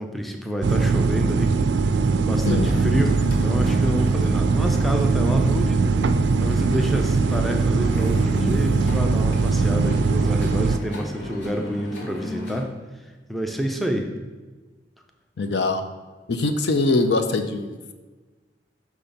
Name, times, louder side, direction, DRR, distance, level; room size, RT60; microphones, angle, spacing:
voice 1, 0.0-5.8 6.4-12.7 13.3-14.1, equal, ahead, 3 dB, 0.5 m, -28 dB
sound 1, 0.6-10.8, right 4 dB, 75° right, 0.3 m, -21 dB
sound 2, 2.4-12.6, left 1 dB, 90° left, 1.4 m, -36 dB
voice 2, 15.4-15.8 16.3-17.9, left 2 dB, 70° left, 7 dB, 0.5 m, -23 dB
5.9 x 4.3 x 5.1 m, 1.3 s
head